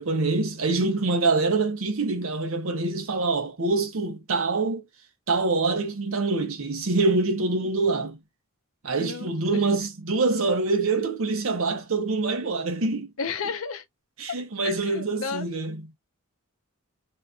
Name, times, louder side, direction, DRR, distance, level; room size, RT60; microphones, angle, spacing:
voice 1, 0.0-4.8 5.3-8.2 8.8-13.1 14.2-15.9, right 3 dB, 70° right, 0.9 m, -25 dB
voice 2, 9.0-9.7 13.2-13.8 14.6-15.5, left 5 dB, 75° left, 0.5 m, -33 dB
2.8 x 2.4 x 2.4 m
head